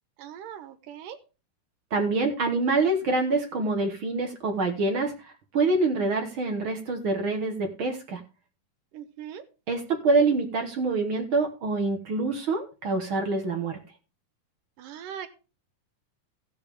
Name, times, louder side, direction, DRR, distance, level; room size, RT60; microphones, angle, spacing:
voice 1, 0.2-1.2 8.9-9.5 14.8-15.3, right 9 dB, 90° right, 8 dB, 2.8 m, -40 dB
voice 2, 1.9-8.2 9.7-13.8, right 3 dB, 55° right, 4 dB, 1.6 m, -26 dB
16.5 x 6.8 x 3.4 m, 0.31 s
omnidirectional pair, 3.7 m